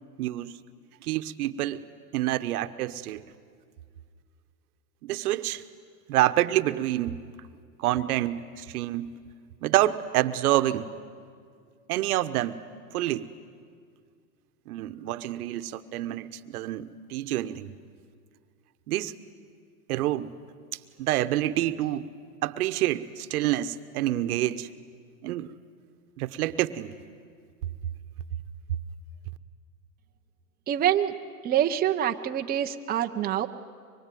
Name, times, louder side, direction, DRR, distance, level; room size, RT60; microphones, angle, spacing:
voice 1, 0.2-0.6 1.0-1.9 2.1-3.2 5.0-5.6 6.1-7.2 7.8-9.2 9.6-10.9 11.9-12.6 12.9-13.3 14.7-17.7 18.9-19.1 19.9-20.3 21.0-22.1 22.4-24.7 25.2-25.5 26.2-26.9, right 14 dB, 70° right, 11 dB, 1.2 m, -27 dB
voice 2, 30.7-31.1 31.4-33.5, right 11 dB, 20° right, 4 dB, 0.9 m, -25 dB
24.5 x 22.5 x 9.3 m, 2.1 s
hypercardioid pair, 125°, 46 cm